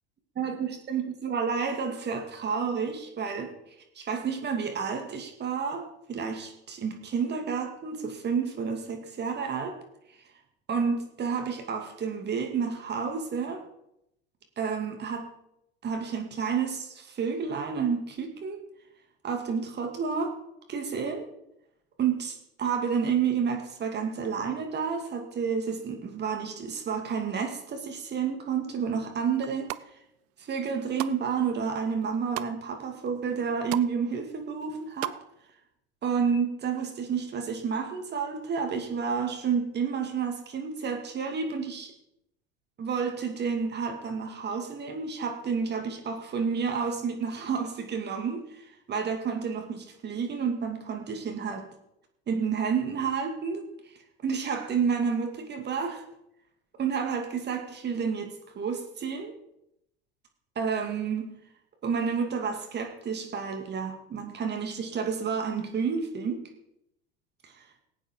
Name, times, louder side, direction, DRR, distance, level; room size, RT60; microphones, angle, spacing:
voice 1, 0.4-3.5 4.0-9.8 10.7-13.6 14.6-15.3 15.8-18.6 19.2-20.4 20.7-21.3 22.0-29.7 30.4-35.2 36.0-41.9 42.8-48.6 48.9-51.6 52.3-53.6 54.2-56.0 56.8-59.3 60.6-61.3 61.8-66.5, right 6 dB, 35° right, 3 dB, 2.5 m, -30 dB
sound 1, 29.4-29.9 30.4-31.2 31.6-32.5 33.1-33.2 33.4-33.9 34.2-35.2 35.5-35.6, right 18 dB, 50° right, 0.6 m, -36 dB
17.5 x 8.8 x 4.7 m, 0.80 s
hypercardioid pair, 75°, 31 cm